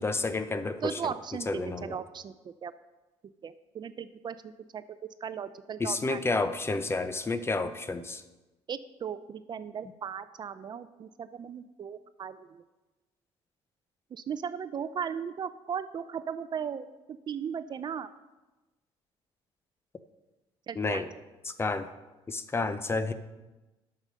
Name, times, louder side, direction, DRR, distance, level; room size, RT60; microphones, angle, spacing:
voice 1, 0.0-1.1 1.5-2.0 5.8-8.2 20.8-21.1 21.4-21.9 22.3-23.1, left 3 dB, 20° left, 11 dB, 0.7 m, -30 dB
voice 2, 0.8-2.7 3.4-4.8 5.2-6.2 8.7-12.6 14.1-16.9 17.3-18.1 20.7-21.0, right 7 dB, 40° right, 13 dB, 0.5 m, -37 dB
9.0 x 6.6 x 6.3 m, 1.1 s
cardioid pair, 105°, 12 cm